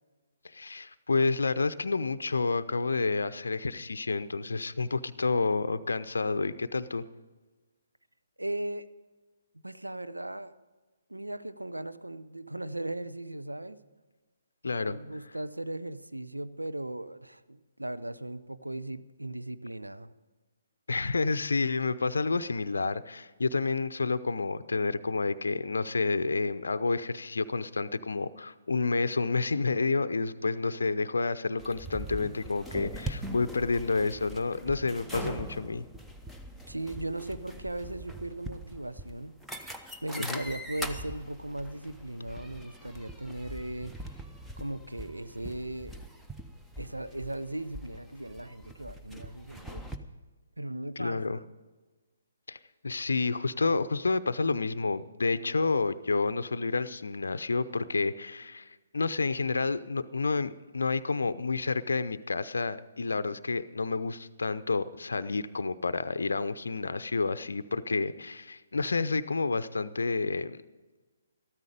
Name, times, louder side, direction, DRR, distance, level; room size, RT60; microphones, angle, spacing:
voice 1, 0.4-7.0 14.6-15.0 20.9-35.9 40.2-40.4 51.0-51.4 52.5-52.6 52.8-70.6, left 3 dB, 65° left, 0.6 m, -29 dB
voice 2, 8.4-8.9 9.6-10.6 11.1-13.8 14.8-20.1 36.7-39.4 40.0-44.2 44.6-46.0 46.8-49.9 50.6-51.5, right 1 dB, 85° right, 0.7 m, -38 dB
sound 1, 31.6-50.0, right 1 dB, ahead, 0.8 m, -42 dB
14.0 x 13.0 x 5.1 m
figure-of-eight pair, 135°, 0 cm